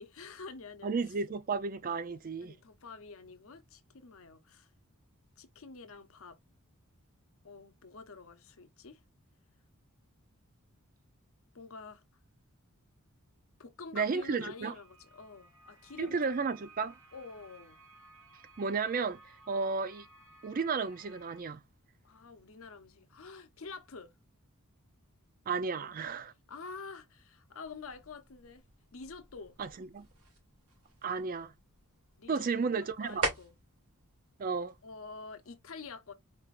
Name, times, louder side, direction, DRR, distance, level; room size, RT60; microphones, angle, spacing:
voice 1, 0.0-0.9 2.1-4.7 5.4-6.4 7.4-9.0 11.5-12.0 13.6-16.5 17.1-17.8 22.0-24.1 25.7-26.1 26.5-28.6 28.9-29.6 32.2-33.5 34.8-36.1, left 4 dB, 65° left, 0.7 m, -48 dB
voice 2, 0.8-2.5 13.9-14.7 16.0-17.0 18.6-19.2 19.5-20.1 20.4-21.6 25.5-26.3 29.6-30.1 31.0-31.5 32.3-33.2 34.4-34.7, right 5 dB, 40° right, 0.4 m, -33 dB
sound 1, 14.5-21.4, right 2 dB, 65° right, 1.3 m, -58 dB
sound 2, 27.6-35.6, right 2 dB, 80° right, 2.5 m, -43 dB
4.5 x 3.2 x 2.5 m
head